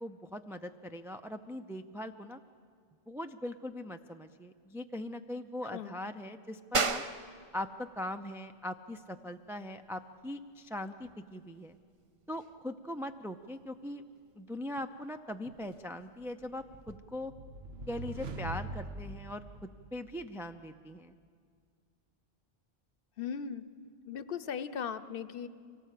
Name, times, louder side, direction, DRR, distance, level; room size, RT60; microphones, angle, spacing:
voice 1, 0.0-2.4 3.1-7.0 7.5-11.8 12.3-14.0 14.4-17.3 17.9-21.1, left 1 dB, 5° right, 6 dB, 0.3 m, -41 dB
sound 1, 6.7-17.0, right 4 dB, 35° right, 0.7 m, -41 dB
sound 2, 16.4-20.3, right 2 dB, 80° right, 1.4 m, -43 dB
voice 2, 23.2-23.6 24.1-25.5, left 7 dB, 65° left, 14 dB, 0.9 m, -38 dB
25.0 x 18.5 x 8.4 m, 2.1 s
omnidirectional pair, 1.0 m